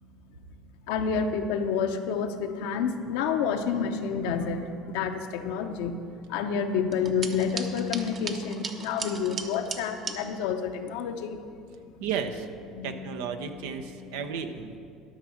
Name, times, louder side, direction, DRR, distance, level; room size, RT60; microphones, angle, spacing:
voice 1, 0.9-6.0 6.3-11.4 12.7-13.1, left 6 dB, 75° left, 6 dB, 0.7 m, -29 dB
sound 1, 6.9-10.2, right 5 dB, 45° right, 1.0 m, -37 dB
voice 2, 12.0-12.5 12.8-14.8, right 7 dB, 75° right, 7 dB, 0.8 m, -33 dB
12.5 x 6.1 x 6.0 m, 2.4 s
hypercardioid pair, 70°, 0 cm